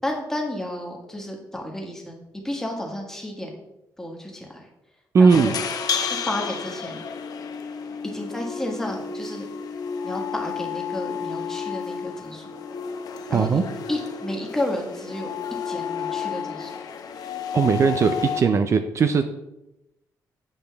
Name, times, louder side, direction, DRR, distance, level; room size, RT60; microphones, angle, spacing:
voice 1, 0.0-3.5 4.0-4.6 5.2-5.5 6.1-7.0 8.0-9.4 10.0-12.5 13.3-13.6 13.9-15.3 15.6-16.7, left 1 dB, 5° left, 0 dB, 1.5 m, -31 dB
voice 2, 5.1-5.6 13.3-13.6 17.5-19.3, right 5 dB, 45° right, 8 dB, 0.4 m, -18 dB
sound 1, 5.3-18.4, left 6 dB, 70° left, 0.7 m, -31 dB
8.5 x 5.1 x 3.4 m, 0.91 s
cardioid pair, 110°, 7 cm